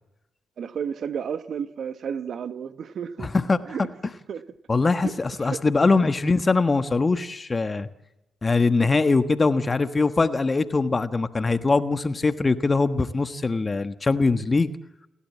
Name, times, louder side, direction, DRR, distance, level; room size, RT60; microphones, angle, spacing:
voice 1, 0.6-3.3 3.7-3.9 4.3-4.4 4.8-5.6, right 7 dB, 60° right, 12 dB, 1.1 m, -32 dB
voice 2, 3.2-3.6 4.7-7.9 8.4-14.7, left 3 dB, 35° left, 10 dB, 1.4 m, -22 dB
28.5 x 12.0 x 8.6 m, 0.92 s
hypercardioid pair, 45°, 0 cm